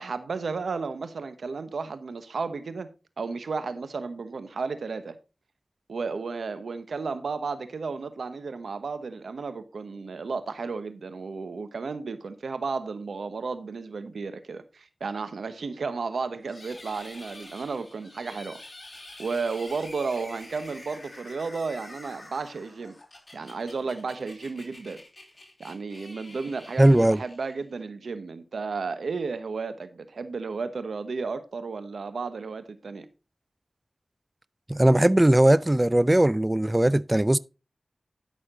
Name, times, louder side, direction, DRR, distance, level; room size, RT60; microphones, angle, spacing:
voice 1, 0.0-2.9 3.2-5.2 5.9-18.6 19.2-23.0 23.3-25.0 25.6-33.1, right 4 dB, 90° right, 1.0 m, -33 dB
sound 1, 16.5-27.8, left 2 dB, 45° left, 4.2 m, -47 dB
voice 2, 26.8-27.2 34.7-37.4, right 1 dB, 20° right, 0.4 m, -19 dB
12.0 x 6.5 x 3.7 m
cardioid pair, 40°, 0 cm